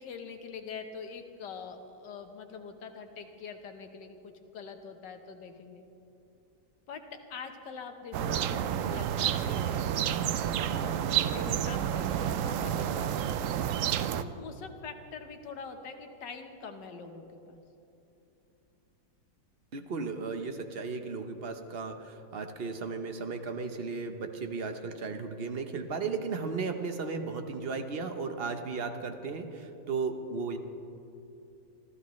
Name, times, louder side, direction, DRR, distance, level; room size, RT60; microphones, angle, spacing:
voice 1, 0.0-5.8 6.9-9.9 10.7-13.6 14.2-17.6, left 5 dB, 85° left, 6 dB, 1.7 m, -44 dB
sound 1, 8.1-14.2, right 10 dB, 70° right, 0.7 m, -30 dB
voice 2, 19.7-30.6, right 4 dB, 45° right, 6 dB, 0.9 m, -35 dB
26.5 x 14.0 x 3.2 m, 2.8 s
omnidirectional pair, 1.8 m